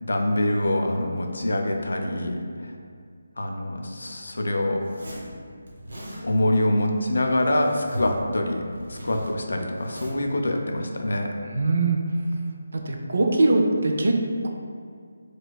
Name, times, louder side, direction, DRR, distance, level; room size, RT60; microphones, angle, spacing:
voice 1, 0.1-2.4 3.4-4.8 6.2-8.6 8.9-11.3, left 1 dB, 90° left, 3 dB, 0.4 m, -25 dB
Zipper (clothing), 4.8-5.3 5.7-6.2 7.1-8.2 8.5-10.3, equal, 75° right, 0.9 m, -39 dB
voice 2, 11.5-12.0 12.7-14.2, right 2 dB, 55° right, 2 dB, 0.4 m, -21 dB
4.1 x 2.2 x 2.3 m, 2.2 s
hypercardioid pair, 175°, 0 cm